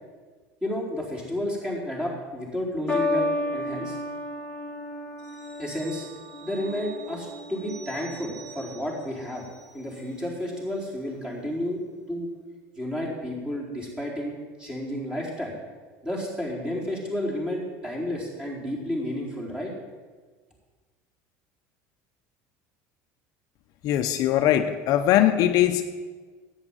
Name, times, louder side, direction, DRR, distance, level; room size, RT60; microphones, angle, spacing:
voice 1, 0.6-3.3 3.5-4.0 5.6-6.1 6.4-9.4 9.7-11.8 12.1-12.3 12.8-15.5 16.0-19.7, left 1 dB, 10° right, -3 dB, 4.3 m, -31 dB
sound 1, 2.9-9.4 10.2-10.7, left 2 dB, 10° left, 1.7 m, -33 dB
sound 2, 5.2-10.3 10.6-10.8, right 8 dB, 85° right, 2.9 m, -49 dB
voice 2, 23.8-25.8, left 12 dB, 55° left, 7 dB, 0.8 m, -21 dB
10.5 x 9.0 x 9.1 m, 1.4 s
supercardioid pair, 120°, 7 cm